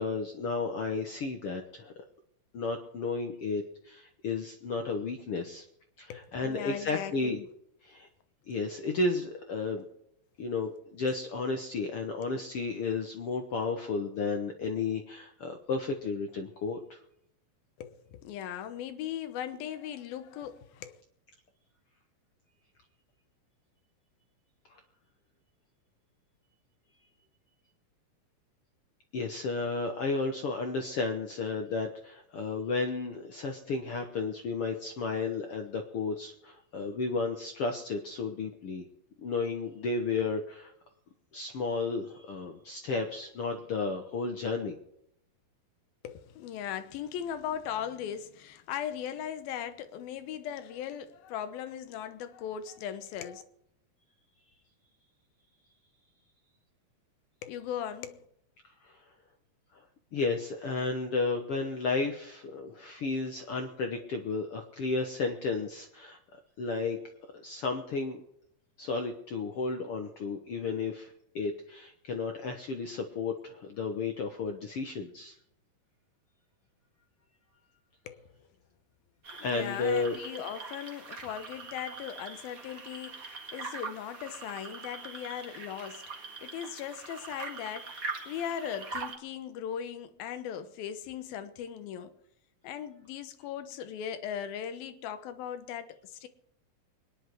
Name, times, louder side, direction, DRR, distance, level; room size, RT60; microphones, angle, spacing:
voice 1, 0.0-1.9 2.5-5.6 6.0-7.4 7.8-8.1 8.5-9.9 10.4-17.0 24.7-24.8 29.1-38.9 39.2-40.7 41.3-44.8 58.8-59.0 59.7-59.8 60.1-66.2 66.6-67.0 67.3-68.2 68.8-75.3 79.4-80.2, left 4 dB, 65° left, 1.4 m, -33 dB
voice 2, 6.1-7.5 12.3-12.4 17.8-21.0 46.0-53.4 57.4-58.3 78.1-78.3 79.4-92.1 92.6-96.3, left 9 dB, 90° left, 2.9 m, -38 dB
sound 1, 79.2-89.2, right 4 dB, 35° right, 1.6 m, -42 dB
24.0 x 10.5 x 4.6 m
omnidirectional pair, 4.1 m